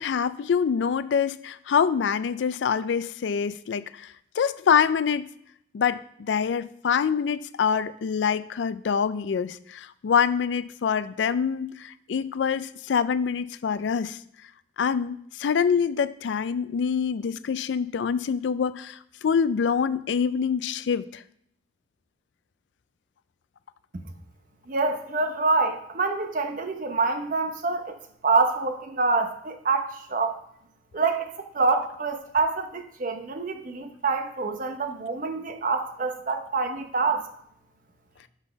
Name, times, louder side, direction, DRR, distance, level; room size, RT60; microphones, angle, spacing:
voice 1, 0.0-5.2 5.7-14.2 14.8-21.2, left 6 dB, 75° left, 16 dB, 0.4 m, -25 dB
voice 2, 24.7-28.0 28.2-30.4 30.9-37.3, right 4 dB, 45° right, 7 dB, 0.8 m, -26 dB
6.0 x 5.6 x 5.7 m, 0.72 s
head